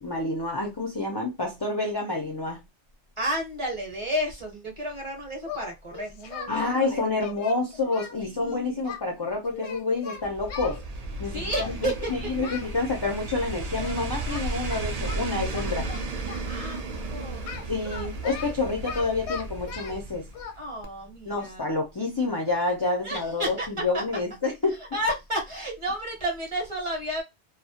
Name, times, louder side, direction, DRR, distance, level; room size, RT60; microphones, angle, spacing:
voice 1, 0.0-2.6 6.5-10.8 11.2-15.9 17.7-20.3 21.3-24.8, left 3 dB, 40° left, 0.3 m, -28 dB
voice 2, 3.2-7.0 8.2-9.2 11.2-12.1 16.4-17.4 20.6-21.6 23.0-24.0 24.7-27.2, right 1 dB, 30° right, 0.8 m, -32 dB
Singing, 5.4-6.5 6.9-9.0 9.5-10.8 11.5-11.7 12.0-12.7 13.8-14.0 14.3-16.5 17.5-20.0 20.3-20.5, left 7 dB, 80° left, 0.9 m, -39 dB
sound 1, 10.2-20.6 20.8-20.9, right 2 dB, 60° right, 0.4 m, -34 dB
2.2 x 2.0 x 2.7 m
omnidirectional pair, 1.2 m